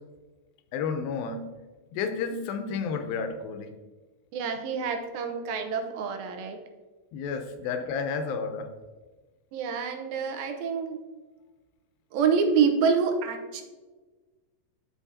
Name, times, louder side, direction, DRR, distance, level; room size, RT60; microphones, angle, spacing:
voice 1, 0.7-1.5 1.9-3.7 7.1-8.7, left 5 dB, 85° left, 7 dB, 2.5 m, -31 dB
voice 2, 4.3-6.6 9.5-11.0 12.1-13.6, right 6 dB, 90° right, 5 dB, 2.7 m, -27 dB
12.5 x 5.1 x 2.8 m, 1.3 s
omnidirectional pair, 4.1 m